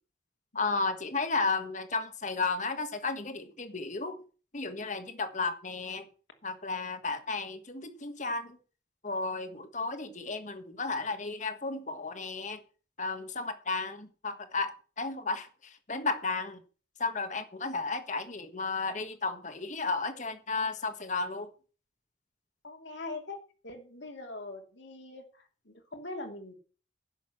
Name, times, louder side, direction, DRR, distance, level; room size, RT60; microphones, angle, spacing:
voice 1, 0.5-4.2 4.5-6.0 6.4-8.6 9.0-12.6 13.0-14.7 15.0-16.6 17.0-21.5, left 3 dB, 40° left, 1.6 m, -33 dB
voice 2, 22.6-23.4 23.6-26.5, left 2 dB, 65° left, 3.0 m, -42 dB
11.0 x 6.9 x 7.7 m
head